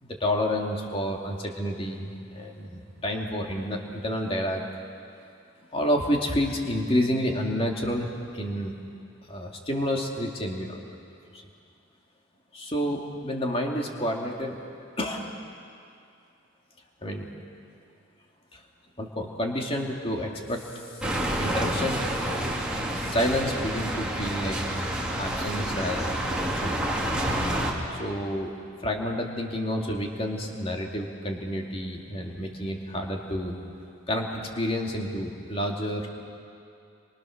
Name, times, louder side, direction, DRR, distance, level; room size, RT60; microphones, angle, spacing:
voice 1, 0.0-4.6 5.7-8.1 8.3-8.8 9.3-11.0 11.3-11.4 12.5-14.6 15.0-15.3 17.0-17.3 18.5-18.6 19.0-22.0 22.9-24.6 25.2-26.2 26.6-26.8 27.9-33.6 34.1-36.3, equal, 30° left, 0 dB, 2.7 m, -29 dB
sound 1, 21.0-27.7, right 1 dB, 5° right, 3.1 m, -28 dB
30.0 x 24.5 x 6.6 m, 2.5 s
head